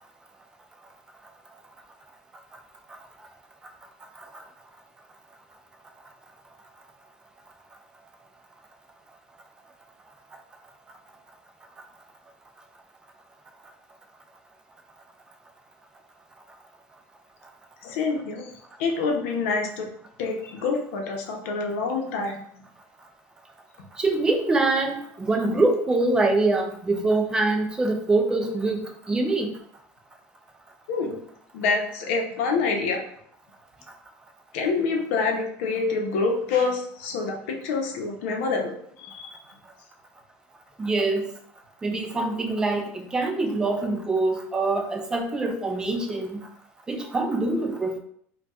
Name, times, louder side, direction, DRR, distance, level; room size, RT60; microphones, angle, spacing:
voice 1, 17.8-18.5 18.8-19.9 20.2-22.4 30.9-31.2 31.5-33.0 34.5-39.4, left 4 dB, 80° left, 2 dB, 0.7 m, -26 dB
voice 2, 24.0-28.8 29.1-29.5 40.8-41.2 41.8-46.4 46.9-48.0, right 2 dB, 10° right, 3 dB, 0.3 m, -24 dB
4.0 x 2.2 x 2.3 m, 0.66 s
cardioid pair, 160°, 7 cm